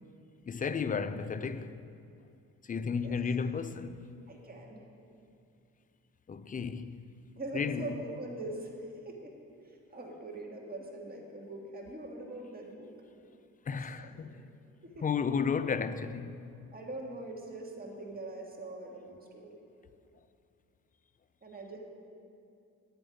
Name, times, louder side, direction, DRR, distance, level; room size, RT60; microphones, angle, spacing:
voice 1, 0.5-1.8 2.6-4.1 6.3-7.0 7.5-7.9 13.7-14.5 15.0-16.5, left 6 dB, 30° left, 0.4 m, -33 dB
voice 2, 2.9-3.2 4.3-4.9 7.4-9.3 9.6-12.9 14.0-14.3 14.8-15.0 16.7-19.6 21.4-21.8, right 2 dB, 30° right, 1.8 m, -43 dB
9.3 x 8.6 x 5.0 m
cardioid pair, 90°, 30 cm